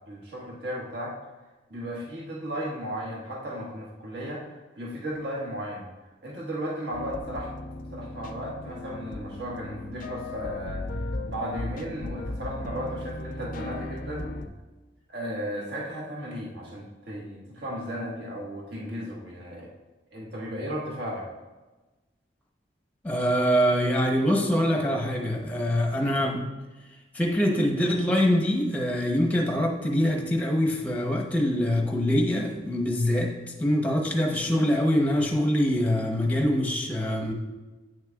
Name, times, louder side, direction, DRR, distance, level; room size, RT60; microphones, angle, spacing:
voice 1, 0.1-1.1 1.7-5.9 6.2-7.5 7.9-14.3 15.1-19.7 20.1-21.3, equal, 60° right, -3 dB, 1.5 m, -35 dB
sound 1, 6.9-14.5, left 2 dB, 45° left, 0.4 m, -36 dB
voice 2, 23.0-26.4 27.1-33.3 33.6-37.3, equal, 10° left, 1 dB, 0.8 m, -24 dB
8.9 x 6.4 x 2.3 m, 1.2 s
head